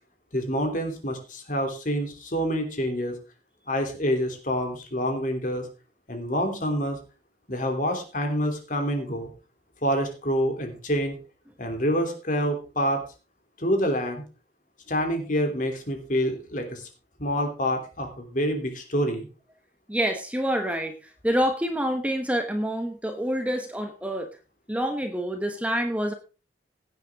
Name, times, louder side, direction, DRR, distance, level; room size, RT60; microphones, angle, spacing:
voice 1, 0.3-3.2 3.7-5.7 6.1-7.0 7.5-9.3 9.8-11.2 11.6-13.0 13.6-14.2 14.9-16.9 17.2-19.3, equal, 45° left, 5 dB, 3.1 m, -27 dB
voice 2, 19.9-21.0 21.2-24.3 24.7-26.1, equal, 10° right, 6 dB, 1.1 m, -27 dB
17.0 x 9.1 x 3.6 m, 0.33 s
head